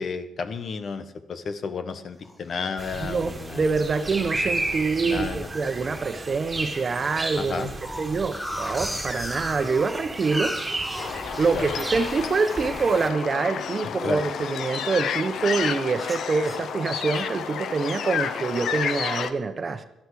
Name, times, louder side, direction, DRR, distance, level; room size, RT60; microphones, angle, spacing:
voice 1, 0.0-3.6 5.0-5.5 7.4-7.7 11.5-11.7 14.0-14.2, left 5 dB, 50° left, 10 dB, 1.2 m, -32 dB
sound 1, 2.2-2.6 3.1-3.2 3.5-3.8 4.2-4.9 5.5-5.9 6.2-6.3 6.6-6.7 7.0-11.9 12.2-14.7 15.0-15.5 16.0-17.4, equal, 10° left, 2.4 m, -37 dB
sound 2, 2.8-13.1, right 2 dB, 20° right, 2.0 m, -33 dB
voice 2, 3.0-7.7 8.0-10.6 11.4-19.8, right 4 dB, 40° right, 9 dB, 1.2 m, -26 dB
sound 3, 11.0-19.3, left 7 dB, 70° left, 0.9 m, -31 dB
16.5 x 12.0 x 4.9 m, 0.93 s
cardioid pair, 90°, 0 cm